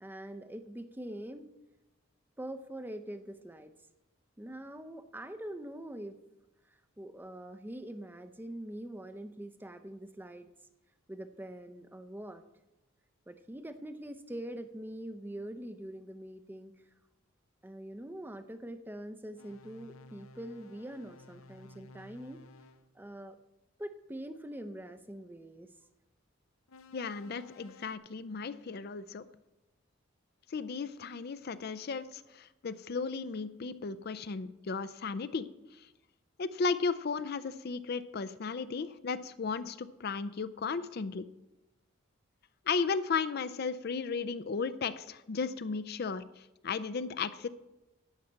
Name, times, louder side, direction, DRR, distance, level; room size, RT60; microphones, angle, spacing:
voice 1, 0.0-1.5 2.4-3.7 4.4-6.2 6.7-10.5 11.1-12.4 13.3-16.7 17.6-22.4 22.9-23.4 23.8-25.7, right 1 dB, 10° right, 10 dB, 0.5 m, -44 dB
sound 1, 19.4-22.8 26.7-28.0, left 2 dB, 80° left, 0.7 m, -55 dB
voice 2, 26.9-29.2 30.5-35.5 36.4-41.3 42.7-46.2 46.6-47.5, left 5 dB, 50° left, 14 dB, 0.4 m, -35 dB
11.5 x 5.7 x 8.6 m, 0.98 s
head